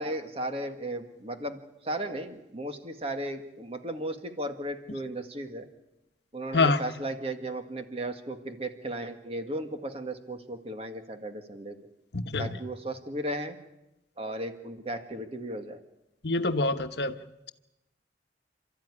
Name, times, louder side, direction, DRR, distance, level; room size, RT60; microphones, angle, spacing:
voice 1, 0.0-1.6 1.8-5.7 6.3-11.8 12.4-13.6 14.2-15.8, right 1 dB, 35° right, 7 dB, 2.0 m, -35 dB
voice 2, 12.1-12.5 16.2-17.1, left 3 dB, 65° left, 9 dB, 1.2 m, -25 dB
29.0 x 13.5 x 9.9 m, 0.92 s
head